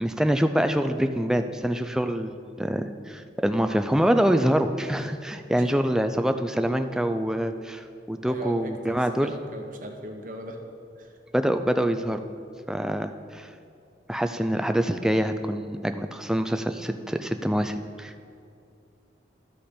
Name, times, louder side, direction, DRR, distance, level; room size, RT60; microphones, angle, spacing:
voice 1, 0.0-9.3 11.3-12.2 12.7-13.5 14.1-18.3, equal, 5° right, 8 dB, 0.3 m, -25 dB
voice 2, 8.2-10.6 11.0-11.1, equal, 50° right, 3 dB, 0.9 m, -39 dB
13.0 x 5.3 x 4.3 m, 2.5 s
head